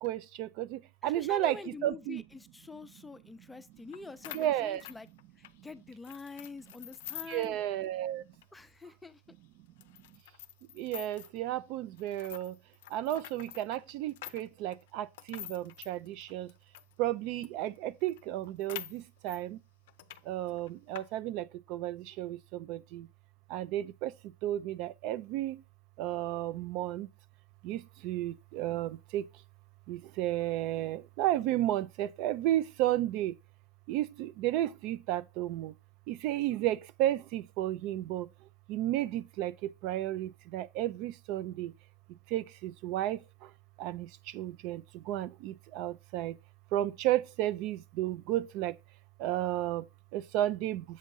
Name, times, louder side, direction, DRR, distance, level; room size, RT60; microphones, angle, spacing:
voice 1, 0.0-2.2 4.3-4.8 7.3-8.2 10.8-12.5 12.9-16.5 17.0-19.6 20.3-21.4 21.7-22.4 22.7-23.0 23.5-24.1 24.4-25.6 26.0-27.1 27.6-29.2 29.9-33.3 33.9-35.7 36.1-38.2 38.7-39.5 39.8-41.7 42.3-43.2 43.8-44.1 44.3-44.8 45.1-46.3 46.7-48.7 49.2-49.8 50.1-50.8, right 13 dB, 55° right, 0.3 m, -32 dB
voice 2, 1.0-5.1 5.4-7.5 8.5-9.2, left 3 dB, 10° left, 0.5 m, -46 dB
sound 1, 3.9-4.0 4.2-5.6 6.0-7.5 7.8-7.9 8.3-8.4 9.0-9.1 9.8-11.4 12.0-16.9 17.4-17.5 17.8-17.9 18.1-19.4 19.9-20.2 20.5-21.0, left 13 dB, 75° left, 0.4 m, -46 dB
7.4 x 2.5 x 5.4 m
supercardioid pair, 115°, 0 cm